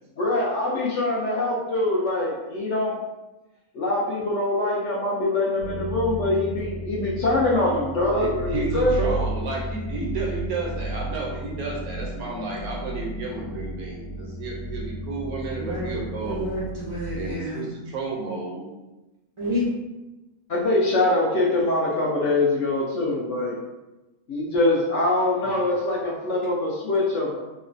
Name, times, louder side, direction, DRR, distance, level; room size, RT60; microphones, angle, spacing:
voice 1, 0.2-3.0 3.7-9.0 20.5-23.6 24.3-27.4, left 2 dB, 65° left, -4 dB, 0.7 m, -23 dB
sound 1, 5.6-17.3, right 1 dB, 85° left, 1.1 m, -33 dB
voice 2, 8.1-16.5 17.2-18.7 25.4-25.5, right 3 dB, 75° right, -2 dB, 1.1 m, -32 dB
voice 3, 15.6-15.9 16.2-17.6 19.4-19.7, left 1 dB, 55° right, -10 dB, 0.3 m, -29 dB
3.0 x 2.0 x 2.5 m, 1.1 s
omnidirectional pair, 1.5 m